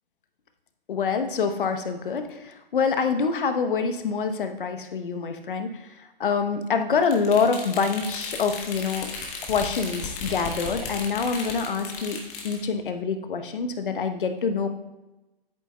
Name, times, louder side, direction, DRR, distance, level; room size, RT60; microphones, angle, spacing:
voice 1, 0.9-2.4 2.7-5.7 6.2-9.1 9.5-12.2 12.4-14.7, left 5 dB, 60° left, 7 dB, 1.0 m, -25 dB
sound 1, 7.0-12.6, left 4 dB, 25° left, 1.3 m, -35 dB
10.5 x 8.6 x 2.3 m, 1.0 s
figure-of-eight pair, 125°, 29 cm